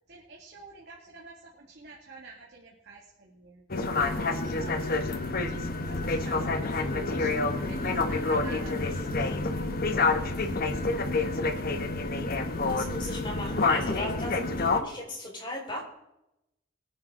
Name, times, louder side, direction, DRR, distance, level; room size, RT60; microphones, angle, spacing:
voice 1, 0.1-5.0 5.5-9.6 10.0-11.5, right 3 dB, 55° right, -3 dB, 2.3 m, -49 dB
sound 1, 3.7-14.8, left 3 dB, 50° left, 1.1 m, -28 dB
voice 2, 12.7-15.8, left 1 dB, 25° left, -2 dB, 4.7 m, -37 dB
24.0 x 9.5 x 3.8 m, 0.85 s
head